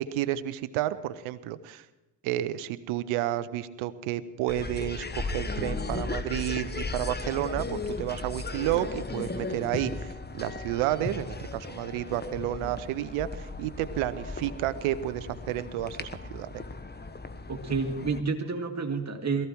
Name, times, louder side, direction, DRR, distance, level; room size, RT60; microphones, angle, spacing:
voice 1, 0.0-1.9 2.2-16.6, right 13 dB, 80° right, 15 dB, 0.9 m, -31 dB
sound 1, 4.5-18.2, left 3 dB, 20° left, 1.3 m, -36 dB
voice 2, 17.5-19.5, right 4 dB, 35° right, 4 dB, 2.1 m, -29 dB
18.0 x 14.5 x 4.6 m, 1.1 s
hypercardioid pair, 50°, 49 cm